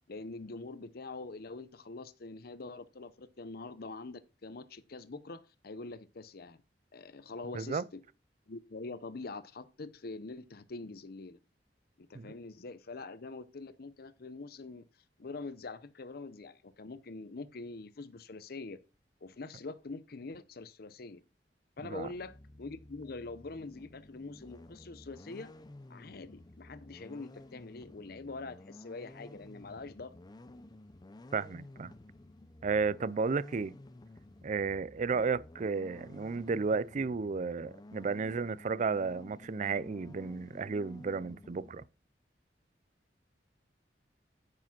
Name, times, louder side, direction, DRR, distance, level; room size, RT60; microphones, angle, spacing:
voice 1, 0.1-6.6 6.9-8.0 8.5-11.4 12.0-14.9 15.2-18.8 19.2-21.2 21.8-25.5 25.9-30.1 35.1-35.3, left 3 dB, 60° left, 0.7 m, -44 dB
sound 1, 22.0-41.9, left 1 dB, 25° left, 0.5 m, -53 dB
voice 2, 31.3-31.9 32.6-33.8 34.4-41.8, right 4 dB, 45° right, 0.4 m, -33 dB
9.7 x 4.8 x 6.0 m
head